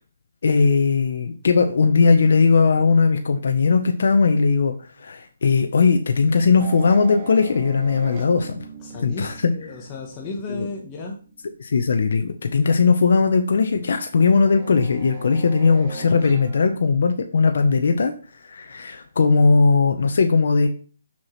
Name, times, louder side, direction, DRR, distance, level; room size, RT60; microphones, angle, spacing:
voice 1, 0.4-4.7 5.0-8.5 9.0-9.5 10.5-10.7 11.6-18.1 18.4-20.7, left 4 dB, 60° left, 6 dB, 0.7 m, -18 dB
sound 1, 6.6-12.7 13.9-16.8, right 3 dB, 25° right, 1.5 m, -40 dB
voice 2, 8.8-11.2, left 3 dB, 20° left, -1 dB, 1.0 m, -34 dB
6.0 x 5.8 x 3.1 m, 0.40 s
hypercardioid pair, 160°, 0 cm